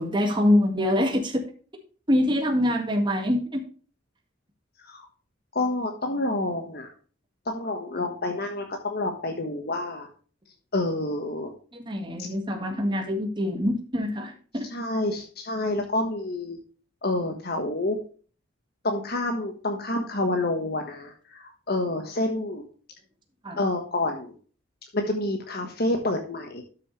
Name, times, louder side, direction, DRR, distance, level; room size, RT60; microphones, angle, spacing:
voice 1, 0.0-1.4 2.1-3.6 11.7-14.7 23.4-23.6, left 1 dB, 25° right, 3 dB, 1.8 m, -24 dB
voice 2, 5.5-6.9 7.5-10.1 10.7-11.5 12.2-12.3 14.7-16.6 17.0-18.0 18.8-22.6 23.6-24.3 24.9-26.6, left 2 dB, 50° left, 4 dB, 1.4 m, -28 dB
12.5 x 6.6 x 3.2 m, 0.40 s
head